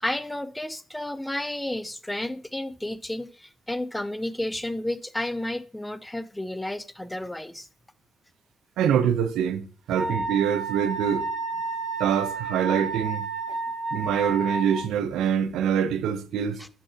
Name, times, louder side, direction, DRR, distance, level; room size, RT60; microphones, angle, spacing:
voice 1, 0.0-7.7 13.5-13.6 16.6-16.7, left 1 dB, 10° left, 0.4 m, -32 dB
voice 2, 8.8-11.2 12.0-13.3 13.9-16.6, right 8 dB, 85° right, 0.6 m, -25 dB
Wind instrument woodwind instrument, 9.9-14.9, right 3 dB, 60° right, 1.7 m, -31 dB
6.8 x 6.3 x 2.7 m
cardioid pair, 90°, 0 cm